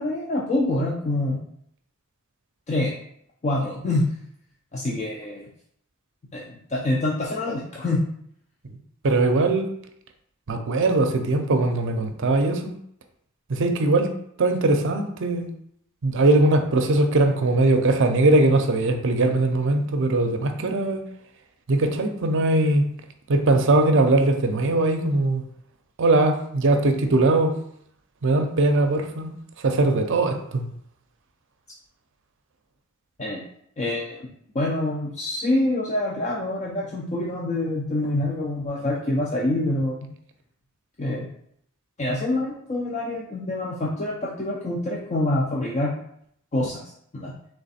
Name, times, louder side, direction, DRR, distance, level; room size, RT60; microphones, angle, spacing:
voice 1, 0.0-1.4 2.7-2.9 3.4-4.1 4.7-5.5 6.3-8.0 33.2-33.4 33.8-34.3 34.5-40.1 41.0-41.3 42.0-45.9 46.5-46.8 47.1-47.3, left 1 dB, 35° left, -3 dB, 0.5 m, -26 dB
voice 2, 9.0-9.7 10.5-12.7 13.5-14.1 14.4-15.5 16.0-21.0 21.7-22.8 23.3-25.4 26.0-27.5 28.2-29.3 29.6-30.6, right 2 dB, 60° right, 6 dB, 0.6 m, -20 dB
3.4 x 3.3 x 4.1 m, 0.70 s
head